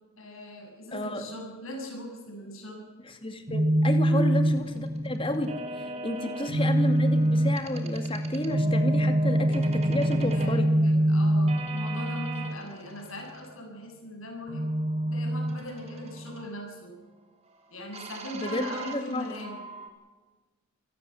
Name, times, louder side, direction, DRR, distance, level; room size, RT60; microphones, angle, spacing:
voice 1, 0.2-2.9 4.1-4.3 5.9-6.4 10.1-14.7 15.1-17.0 17.7-19.6, left 1 dB, 70° left, 2 dB, 7.3 m, -40 dB
voice 2, 0.9-1.3 3.2-5.5 5.8-10.7 18.3-19.4, left 1 dB, 25° left, 7 dB, 2.3 m, -31 dB
sound 1, 3.5-12.5 14.5-16.4 17.9-19.9, right 1 dB, 30° right, 3.3 m, -26 dB
26.5 x 17.5 x 7.8 m, 1.3 s
head